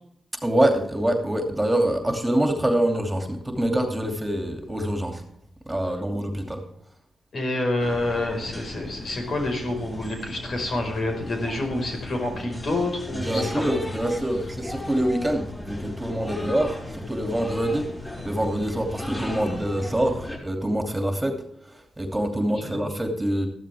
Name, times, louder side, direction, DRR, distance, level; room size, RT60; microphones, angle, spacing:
voice 1, 0.4-5.2 5.7-6.6 13.2-17.9 18.2-21.4 22.0-23.5, right 1 dB, 15° right, 4 dB, 2.7 m, -25 dB
voice 2, 7.3-13.7 14.4-14.5 22.4-22.8, left 2 dB, 60° left, 2 dB, 5.0 m, -28 dB
sound 1, 7.8-20.4, left 1 dB, 20° left, 5.9 m, -37 dB
14.5 x 12.5 x 3.5 m, 0.73 s
cardioid pair, 55°, 0 cm